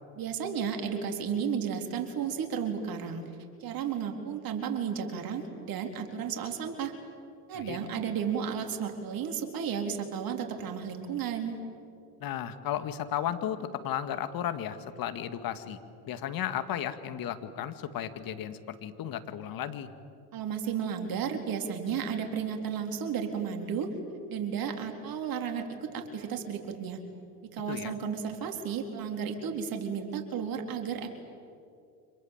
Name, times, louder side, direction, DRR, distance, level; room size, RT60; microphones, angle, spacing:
voice 1, 0.2-3.3 3.6-6.9 7.5-11.6 20.3-23.9 24.3-27.0 27.4-31.1, right 7 dB, 50° right, 4 dB, 3.8 m, -33 dB
voice 2, 12.2-15.8 16.1-19.9 27.7-27.9, left 10 dB, 50° left, 10 dB, 2.2 m, -34 dB
29.5 x 26.5 x 7.4 m, 2.5 s
hypercardioid pair, 85°, 45 cm